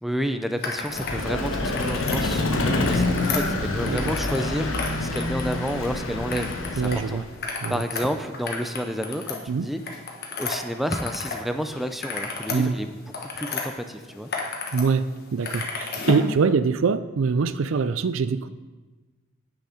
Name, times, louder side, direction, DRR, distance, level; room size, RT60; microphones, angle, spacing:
voice 1, 0.0-7.2 7.7-9.8 10.4-14.3, equal, ahead, 8 dB, 0.5 m, -30 dB
sound 1, 0.6-1.2 1.5-2.2 2.7-4.4 4.7-5.9 6.3-7.0 7.3-11.4 11.7-13.6 14.1-14.8 15.1-16.3, left 4 dB, 55° left, 1.2 m, -32 dB
Vehicle, 0.9-7.3, left 2 dB, 85° left, 1.1 m, -27 dB
voice 2, 3.8-4.2 6.8-7.2 7.6-7.8 9.5-9.7 12.5-12.7 14.7-18.5, right 5 dB, 80° right, 14 dB, 0.4 m, -24 dB
8.3 x 6.4 x 4.9 m, 1.2 s
head